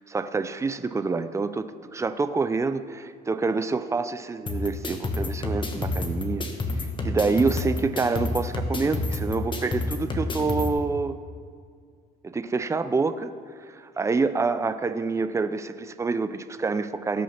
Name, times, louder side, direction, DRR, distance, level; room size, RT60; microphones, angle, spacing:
voice 1, 0.1-6.4 7.0-11.1 12.2-13.3 13.7-17.2, right 4 dB, 15° right, 11 dB, 0.6 m, -27 dB
sound 1, 4.5-10.7, left 2 dB, 30° left, 1.4 m, -29 dB
18.0 x 6.3 x 5.8 m, 2.1 s
cardioid pair, 110°, 17 cm